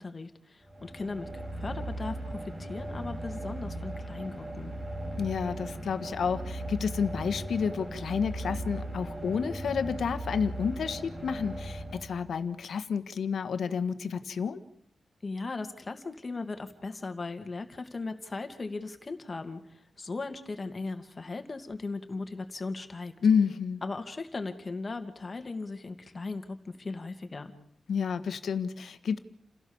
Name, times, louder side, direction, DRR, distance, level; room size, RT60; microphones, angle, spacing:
voice 1, 0.0-4.7 15.2-23.1 23.8-27.5, left 3 dB, 35° left, 6 dB, 2.4 m, -38 dB
sound 1, 0.6-12.5, right 1 dB, 30° right, 5.1 m, -38 dB
voice 2, 5.2-14.6 23.2-23.8 27.9-29.2, left 6 dB, 80° left, 9 dB, 1.6 m, -30 dB
29.5 x 16.5 x 7.3 m, 0.78 s
wide cardioid pair, 115°, 0 cm